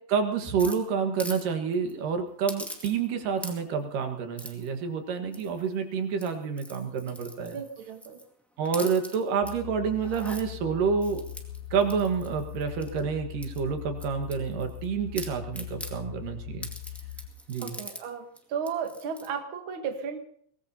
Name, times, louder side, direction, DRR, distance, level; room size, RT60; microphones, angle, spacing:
voice 1, 0.1-7.6 8.6-11.2 11.7-16.7 17.5-17.7, right 6 dB, 75° right, 4 dB, 3.2 m, -28 dB
sound 1, 0.6-1.4 1.7-1.9 2.5-3.1 3.4-3.8 4.4-4.7 5.3-5.7 6.1-8.3 8.6-9.5 10.0-10.4 11.0-13.0 13.4-14.8 15.1-15.9 16.6-18.0 18.4-18.5 18.6-19.3, equal, ahead, 1.2 m, -42 dB
voice 2, 7.5-8.2 17.6-20.2, right 6 dB, 50° right, 5 dB, 1.8 m, -34 dB
sound 2, 9.4-17.3, left 12 dB, 70° left, 3.1 m, -41 dB
23.5 x 18.5 x 2.9 m, 0.63 s
omnidirectional pair, 3.9 m